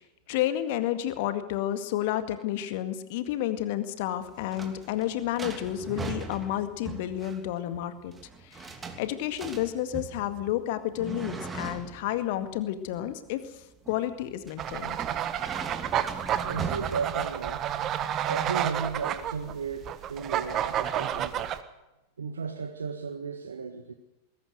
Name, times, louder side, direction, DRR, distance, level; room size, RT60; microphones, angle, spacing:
voice 1, 0.3-8.1 8.4-8.7 9.0-13.4 13.9-15.0, left 12 dB, 50° left, 10 dB, 2.0 m, -30 dB
sound 1, 4.1-17.8, right 4 dB, 15° right, 3.0 m, -40 dB
sound 2, 14.6-21.6, right 10 dB, 30° right, 1.4 m, -30 dB
voice 2, 16.4-17.7 18.2-21.5 22.2-23.9, right 5 dB, 70° right, 6 dB, 1.5 m, -35 dB
21.0 x 18.5 x 7.9 m, 0.98 s
figure-of-eight pair, 90°, 0 cm